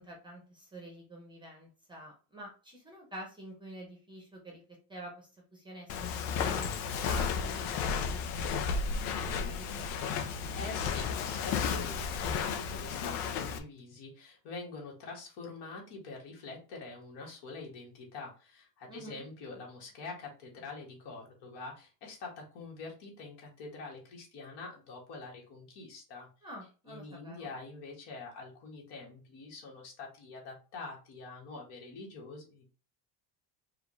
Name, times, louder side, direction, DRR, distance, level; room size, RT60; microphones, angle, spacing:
voice 1, 0.0-10.2 18.9-19.2 26.4-27.5, right 1 dB, 10° right, 0 dB, 0.8 m, -48 dB
Walk footsteps, 5.9-13.6, left 6 dB, 80° left, 0.8 m, -33 dB
voice 2, 10.5-26.3 26.9-32.6, left 3 dB, 60° left, -1 dB, 2.0 m, -45 dB
4.8 x 2.6 x 3.2 m, 0.35 s
cardioid pair, 170°, 46 cm